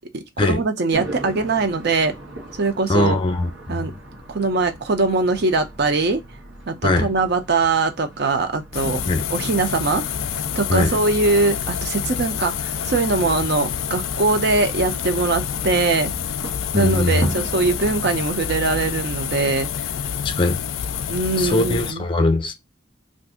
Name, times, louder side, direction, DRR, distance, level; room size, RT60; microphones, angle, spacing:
voice 1, 0.1-2.1 2.6-3.2 3.7-3.9 4.3-6.2 6.7-9.0 9.3-10.1 10.6-16.1 16.7-19.7 21.1-22.0, right 3 dB, 55° right, 0.6 m, -21 dB
sound 1, 0.9-18.1, right 1 dB, 85° right, 1.2 m, -38 dB
voice 2, 2.9-3.9 6.8-7.1 9.1-9.3 10.7-11.0 16.7-17.3 20.2-20.6 21.4-22.5, left 2 dB, 25° left, 0.5 m, -21 dB
sound 2, 8.7-21.9, left 8 dB, 90° left, 0.4 m, -28 dB
2.6 x 2.5 x 3.6 m
head